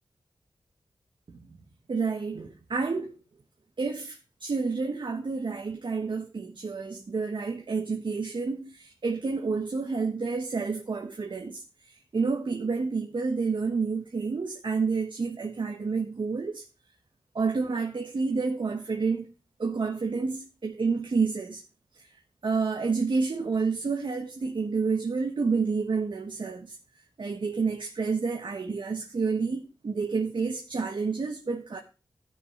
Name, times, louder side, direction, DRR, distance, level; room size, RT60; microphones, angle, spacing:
voice 1, 1.9-3.2 3.8-16.6 17.3-19.3 19.6-21.6 22.4-26.8 27.2-31.8, right 4 dB, 55° right, 1.4 m, -29 dB
13.5 x 6.1 x 4.7 m
wide cardioid pair, 115°, 10 cm